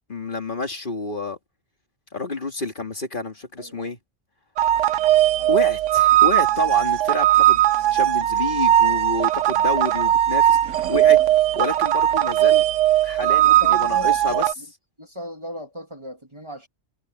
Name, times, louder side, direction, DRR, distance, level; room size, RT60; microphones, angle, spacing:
voice 1, 0.1-1.4 2.1-4.0 5.5-7.6 7.9-10.6 10.9-11.2 11.6-12.6 13.0-14.4, left 2 dB, 45° left, 2.4 m, -29 dB
voice 2, 3.6-3.9 5.4-5.7 13.2-14.7 15.0-16.7, equal, 25° right, 2.0 m, -36 dB
sound 1, 4.6-14.5, right 12 dB, 85° right, 1.1 m, -18 dB
omnidirectional pair, 1.2 m